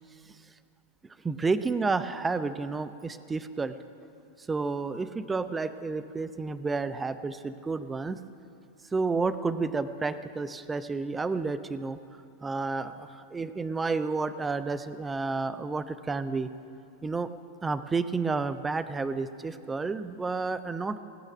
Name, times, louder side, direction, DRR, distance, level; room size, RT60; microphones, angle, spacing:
voice 1, 1.2-3.7 4.5-8.2 8.9-12.0 12.4-16.5 17.0-17.3 17.6-21.0, right 4 dB, 15° right, 13 dB, 0.7 m, -30 dB
17.0 x 9.0 x 9.1 m, 2.7 s
figure-of-eight pair, 90°, 0 cm